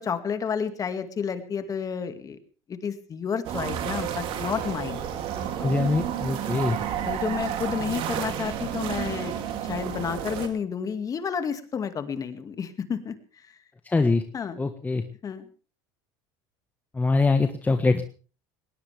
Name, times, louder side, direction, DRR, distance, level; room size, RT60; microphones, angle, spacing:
voice 1, 0.0-2.4 2.7-5.0 7.1-9.3 9.7-13.2 14.3-14.6 15.2-15.5, left 6 dB, 35° left, 9 dB, 2.2 m, -30 dB
sound 1, 3.4-10.5, right 9 dB, 60° right, 2.9 m, -31 dB
voice 2, 5.6-6.8 13.8-14.2 14.6-15.0 16.9-18.0, left 3 dB, 15° left, 7 dB, 1.4 m, -23 dB
20.0 x 18.5 x 3.5 m, 0.37 s
supercardioid pair, 95°, 10 cm